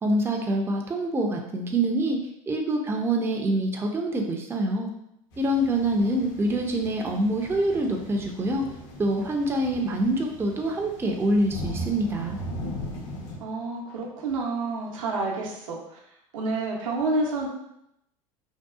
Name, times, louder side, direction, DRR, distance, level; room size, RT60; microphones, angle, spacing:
voice 1, 0.0-2.2 2.5-4.9 5.4-8.6 9.0-12.4, right 1 dB, 15° right, 1 dB, 0.4 m, -25 dB
sound 1, 5.3-13.4, equal, 60° left, 0.8 m, -39 dB
voice 2, 13.4-16.0 16.3-17.5, right 2 dB, 75° right, -2 dB, 0.6 m, -29 dB
2.6 x 2.3 x 2.3 m, 0.79 s
hypercardioid pair, 85°, 17 cm